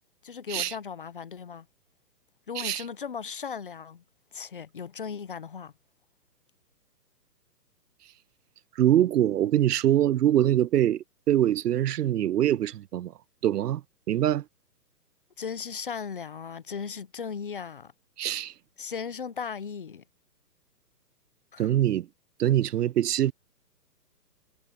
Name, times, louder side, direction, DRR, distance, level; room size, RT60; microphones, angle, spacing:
voice 1, 0.2-1.7 2.5-4.0 4.3-5.7 15.4-17.9 18.8-20.0 21.5-21.7, left 6 dB, 30° left, 0.7 m, -37 dB
voice 2, 8.8-13.1 13.4-13.8 14.1-14.4 18.2-18.5 21.6-22.1 22.4-23.3, right 12 dB, 70° right, 0.6 m, -24 dB
hypercardioid pair, 170°, 50 cm